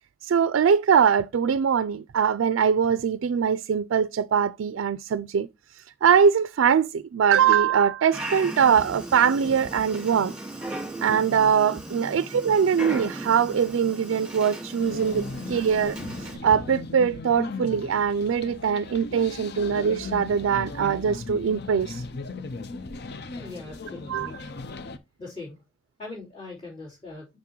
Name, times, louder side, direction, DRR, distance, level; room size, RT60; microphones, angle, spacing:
voice 1, 0.2-5.5 5.7-10.3 11.0-22.0 24.1-24.3, right 7 dB, 80° right, 0.3 m, -22 dB
Dog, 8.1-16.4, right 1 dB, 5° right, 2.6 m, -36 dB
sound 1, 14.8-25.0, left 3 dB, 55° left, 0.6 m, -37 dB
voice 2, 23.4-24.4 25.2-25.6 26.0-27.3, left 3 dB, 30° left, 3.6 m, -40 dB
6.5 x 5.9 x 2.9 m
head